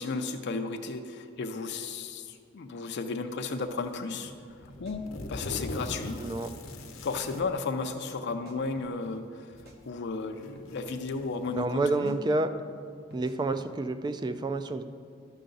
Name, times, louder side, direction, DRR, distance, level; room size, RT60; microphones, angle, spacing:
voice 1, 0.0-4.3 4.8-6.2 7.0-9.6 9.9-12.2, left 4 dB, 60° left, 6 dB, 0.5 m, -34 dB
sound 1, 3.6-4.0 4.5-7.5 8.6-8.7 9.6-9.7 10.2-11.7, left 1 dB, 85° left, 1.0 m, -41 dB
sound 2, 4.3-4.4 4.7-5.5 5.8-6.2 6.7-6.8 7.1-7.4 8.3-9.2 9.5-10.2 10.6-11.0 11.5-11.6 11.9-12.2 13.1-13.7, equal, 55° right, 1.0 m, -51 dB
voice 2, 6.2-6.5 11.6-12.5 13.1-14.8, right 2 dB, 20° right, 10 dB, 0.3 m, -29 dB
12.5 x 5.7 x 3.9 m, 2.3 s
head